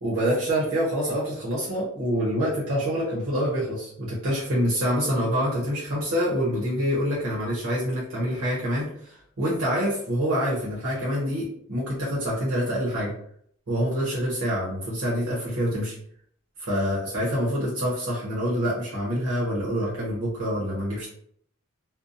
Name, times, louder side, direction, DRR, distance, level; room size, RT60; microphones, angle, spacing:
voice 1, 0.0-13.1 13.7-15.9 16.6-21.1, equal, 80° right, -6 dB, 0.9 m, -26 dB
2.7 x 2.1 x 2.5 m, 0.64 s
head